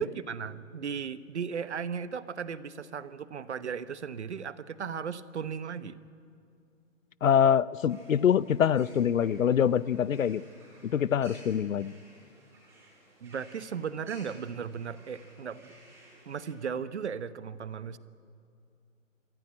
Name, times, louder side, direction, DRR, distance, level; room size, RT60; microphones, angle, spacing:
voice 1, 0.0-6.0 13.2-15.7 16.3-18.0, right 7 dB, 55° right, 14 dB, 1.1 m, -36 dB
voice 2, 7.2-10.4 10.8-11.9, left 8 dB, 75° left, 19 dB, 0.7 m, -24 dB
sound 1, 7.9-16.5, right 1 dB, 5° right, 4.1 m, -56 dB
25.5 x 15.5 x 9.7 m, 2.4 s
hypercardioid pair, 170°, 40 cm